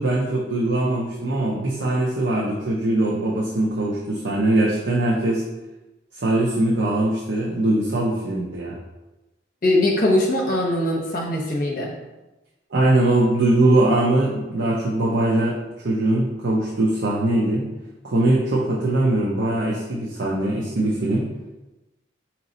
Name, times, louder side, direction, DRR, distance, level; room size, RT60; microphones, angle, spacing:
voice 1, 0.0-5.4 6.2-8.8 12.7-15.5 15.8-17.7 18.0-21.3, right 1 dB, 65° right, -5 dB, 0.7 m, -21 dB
voice 2, 9.6-11.9, left 1 dB, 45° left, -1 dB, 0.9 m, -21 dB
3.9 x 3.0 x 4.1 m, 1.0 s
head